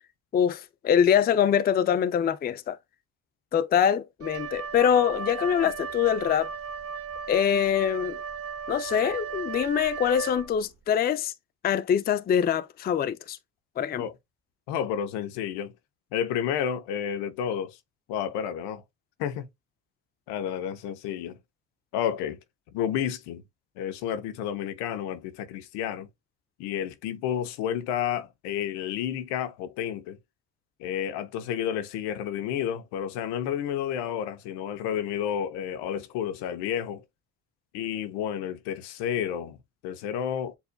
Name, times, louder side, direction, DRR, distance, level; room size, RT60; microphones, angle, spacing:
voice 1, 0.3-2.8 3.5-6.5 7.3-8.2 8.7-11.3 11.6-13.4 13.8-14.0, left 8 dB, 25° left, 0.4 m, -24 dB
Wind instrument woodwind instrument, 4.2-10.8, right 6 dB, 35° right, 0.9 m, -36 dB
voice 2, 14.7-15.7 16.1-17.8 18.1-18.8 19.2-19.5 20.3-21.4 21.9-22.4 22.7-23.4 23.8-26.1 26.6-30.2 30.8-37.0 37.7-39.6 39.8-40.6, left 9 dB, 80° left, 0.8 m, -31 dB
7.0 x 2.6 x 2.2 m
supercardioid pair, 85°, 40 cm